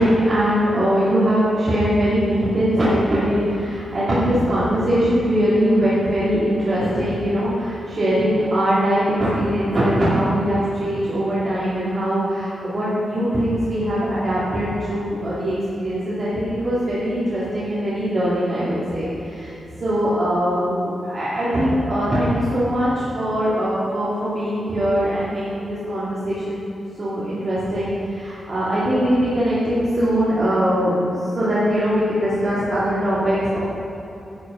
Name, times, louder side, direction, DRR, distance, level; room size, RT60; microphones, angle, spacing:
voice 1, 0.0-26.6 27.0-30.9 31.3-33.6, equal, 40° right, -12 dB, 2.9 m, -21 dB
11.0 x 8.5 x 5.3 m, 2.9 s
wide cardioid pair, 140°, 0 cm